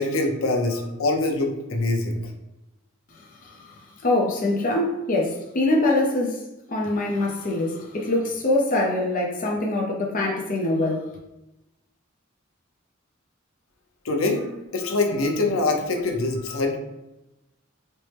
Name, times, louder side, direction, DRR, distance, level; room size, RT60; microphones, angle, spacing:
voice 1, 0.0-2.3 14.0-16.8, left 2 dB, 85° left, 3 dB, 0.7 m, -24 dB
voice 2, 3.1-6.4 6.7-11.1, left 2 dB, 40° left, -2 dB, 0.6 m, -24 dB
4.3 x 2.1 x 3.3 m, 0.96 s
head